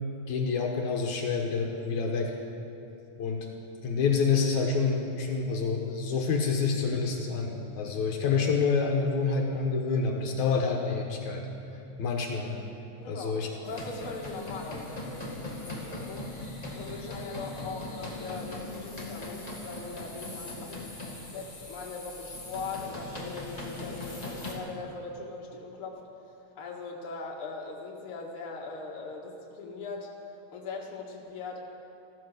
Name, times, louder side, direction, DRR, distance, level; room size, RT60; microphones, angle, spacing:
voice 1, 0.3-2.3 3.2-3.5 3.8-11.4 12.0-12.5 13.1-13.5, left 5 dB, 75° left, 1 dB, 2.6 m, -27 dB
voice 2, 13.0-13.4 13.6-16.3 16.7-20.9 21.2-26.0 26.6-30.1 30.5-31.6, left 4 dB, 50° left, -2 dB, 2.4 m, -40 dB
sound 1, 13.6-24.5, left 2 dB, 15° left, 1.4 m, -40 dB
14.5 x 14.0 x 6.6 m, 2.8 s
omnidirectional pair, 3.4 m